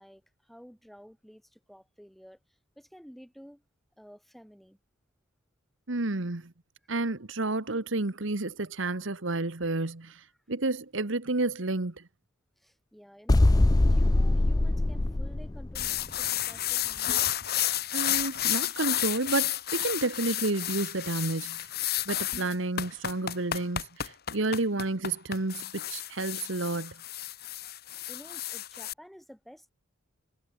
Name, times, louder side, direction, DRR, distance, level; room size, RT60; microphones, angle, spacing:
voice 1, 0.0-3.6 4.0-4.8 10.3-10.4 12.6-13.4 13.8-17.3 28.1-29.7, equal, ahead, 7.7 m, -52 dB
voice 2, 5.9-6.5 6.9-12.0 17.9-21.7 22.1-27.0, right 2 dB, 65° right, 1.4 m, -30 dB
sound 1, 13.3-16.0, left 2 dB, 20° left, 0.4 m, -23 dB
sound 2, 15.7-28.9, left 12 dB, 50° left, 2.0 m, -31 dB
head